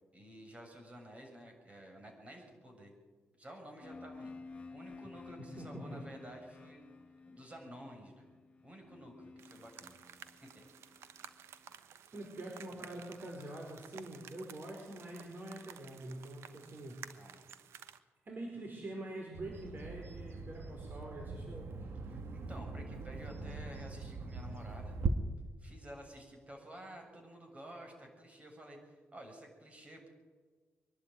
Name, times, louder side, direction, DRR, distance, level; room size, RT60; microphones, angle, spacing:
voice 1, 0.1-2.9 3.4-4.3 4.7-8.3 8.6-10.0 10.4-10.9 17.1-17.5 22.0-25.0 25.6-30.1, right 1 dB, 30° right, 2 dB, 7.3 m, -52 dB
sound 1, 3.8-11.6, left 3 dB, 30° left, 1.8 m, -53 dB
voice 2, 5.4-6.0 12.1-17.3 18.2-21.9, right 1 dB, 45° right, 0 dB, 4.8 m, -45 dB
sound 2, 9.4-18.0, right 9 dB, 90° right, 1.0 m, -54 dB
Bird vocalization bird call bird song, 19.3-25.1, right 4 dB, 65° right, 2.0 m, -41 dB
24.0 x 12.0 x 9.3 m, 1.5 s
cardioid pair, 75°, 4 cm